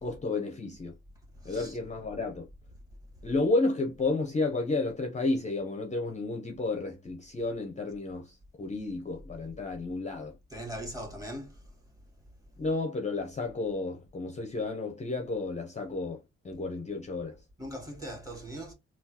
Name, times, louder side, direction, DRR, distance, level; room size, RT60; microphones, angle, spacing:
voice 1, 0.0-1.0 1.4-2.5 3.2-10.3 12.6-17.4, left 3 dB, 25° left, 0.6 m, -32 dB
voice 2, 1.4-1.8 10.5-11.7 17.6-18.7, equal, 10° right, 1.6 m, -40 dB
3.6 x 2.3 x 2.8 m
cardioid pair, 90°, 30 cm